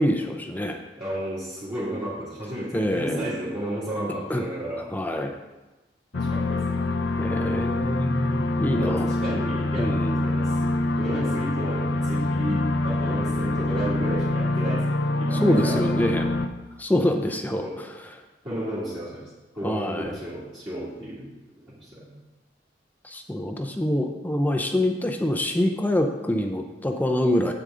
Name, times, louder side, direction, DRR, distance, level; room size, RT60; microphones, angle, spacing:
voice 1, 0.0-0.8 2.7-3.3 4.3-4.4 4.9-5.3 7.2-9.1 9.8-10.2 15.3-16.3 16.8-17.9 19.6-20.1 23.0-27.5, left 1 dB, 10° left, 4 dB, 0.5 m, -25 dB
voice 2, 1.0-4.8 6.1-6.9 8.8-9.9 10.2-10.7 11.0-15.8 17.6-17.8 18.4-19.3 19.6-21.3 21.7-22.2, right 1 dB, 30° right, -11 dB, 2.4 m, -33 dB
sound 1, 6.1-16.5, left 2 dB, 80° left, 0.6 m, -25 dB
8.3 x 8.0 x 3.8 m, 1.1 s
head